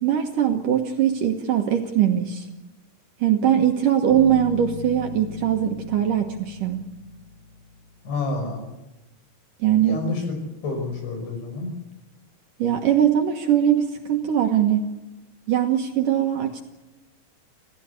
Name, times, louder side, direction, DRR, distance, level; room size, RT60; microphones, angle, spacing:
voice 1, 0.0-2.5 3.2-6.8 9.6-10.0 12.6-14.9 15.5-16.6, right 10 dB, 65° right, 4 dB, 2.3 m, -21 dB
Bass guitar, 4.1-7.8, left 6 dB, 60° left, 3.9 m, -38 dB
voice 2, 8.0-8.6 9.8-10.3 10.6-11.7, left 3 dB, 80° left, 4 dB, 8.1 m, -28 dB
27.0 x 16.0 x 8.4 m, 1.0 s
omnidirectional pair, 5.1 m